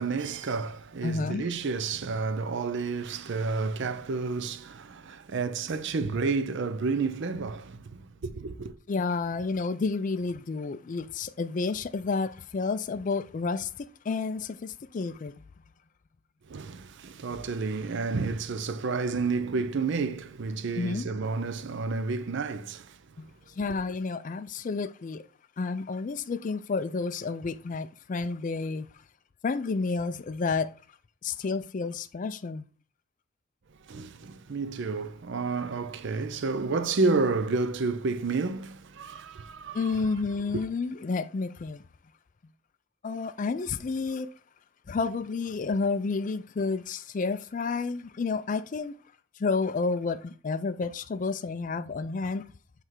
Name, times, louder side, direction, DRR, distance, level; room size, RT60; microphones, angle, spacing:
voice 1, 0.0-8.7 16.5-23.0 33.8-40.0 40.5-40.6, right 4 dB, 55° right, 0.5 m, -30 dB
voice 2, 1.0-1.5 8.9-15.3 20.8-21.1 23.2-23.3 23.6-25.2 25.6-28.9 29.4-30.7 31.2-32.7 39.7-41.8 43.0-44.3 44.9-49.0 49.4-52.5, left 4 dB, 35° left, 0.3 m, -30 dB
7.8 x 3.3 x 4.5 m
head